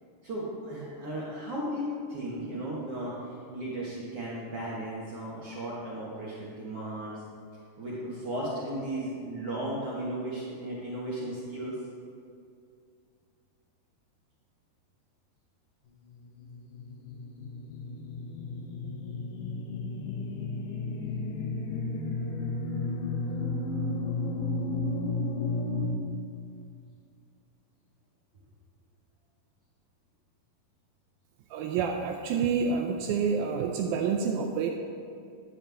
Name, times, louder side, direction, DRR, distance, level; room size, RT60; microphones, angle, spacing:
voice 1, 0.2-7.2 7.8-11.8, right 1 dB, 55° right, -8 dB, 1.6 m, -35 dB
sound 1, 16.1-25.9, left 3 dB, 80° left, 3.1 m, -33 dB
voice 2, 31.5-34.7, right 6 dB, 85° right, 3 dB, 2.1 m, -28 dB
11.0 x 9.4 x 3.5 m, 2.3 s
omnidirectional pair, 4.7 m